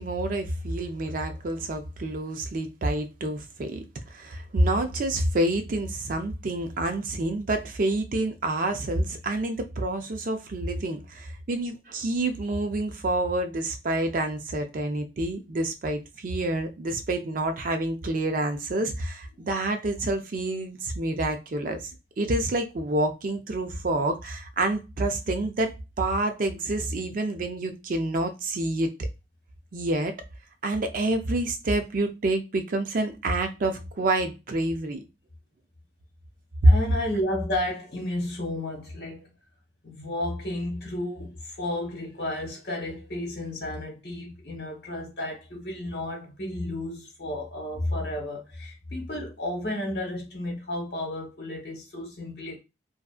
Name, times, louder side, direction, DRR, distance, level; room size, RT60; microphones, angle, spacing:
voice 1, 0.0-21.8 22.2-28.9 29.7-30.1 30.6-35.1 36.6-36.7, right 1 dB, 50° right, 0.4 m, -27 dB
voice 2, 36.6-39.3 39.8-52.6, left 1 dB, 65° left, 1.2 m, -32 dB
2.6 x 2.3 x 2.4 m
head